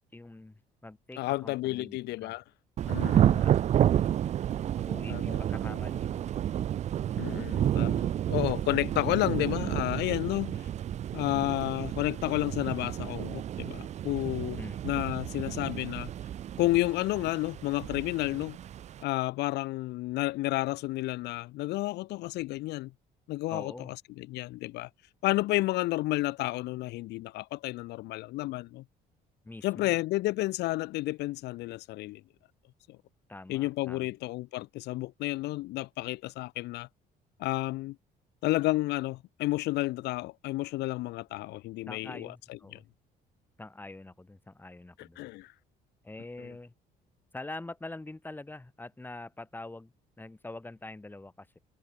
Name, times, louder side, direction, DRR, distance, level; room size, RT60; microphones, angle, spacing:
voice 1, 0.1-2.4 3.3-3.6 4.7-6.3 7.2-7.4 14.5-14.8 23.5-23.9 29.4-30.0 33.3-34.1 41.9-42.8 43.6-45.2 46.0-46.7 47.3-51.6, left 2 dB, 10° left, 3.1 m, -45 dB
voice 2, 1.2-2.4 2.9-3.4 5.1-5.4 7.1-10.7 11.1-16.1 16.6-18.6 19.0-22.9 23.3-23.7 24.2-24.9 25.2-28.8 29.6-32.2 32.9-33.0 33.5-36.9 37.4-38.0 38.4-42.8 45.0-45.5 46.4-46.5, left 19 dB, 80° left, 1.0 m, -31 dB
Thunder / Rain, 2.8-19.0, right 11 dB, 40° right, 0.4 m, -30 dB
cardioid pair, 110°, 17 cm